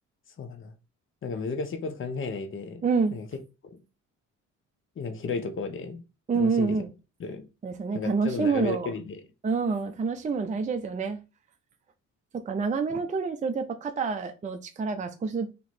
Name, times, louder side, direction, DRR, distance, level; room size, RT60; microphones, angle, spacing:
voice 1, 0.4-0.7 1.2-2.8 3.1-3.8 5.0-6.0 6.3-6.8 7.2-7.4 7.9-9.2, left 4 dB, 40° left, 0.9 m, -34 dB
voice 2, 2.8-3.1 6.3-6.9 7.6-8.9 9.4-11.2 12.3-15.5, right 5 dB, 25° right, 0.5 m, -27 dB
3.0 x 2.9 x 4.2 m
cardioid pair, 90°, 30 cm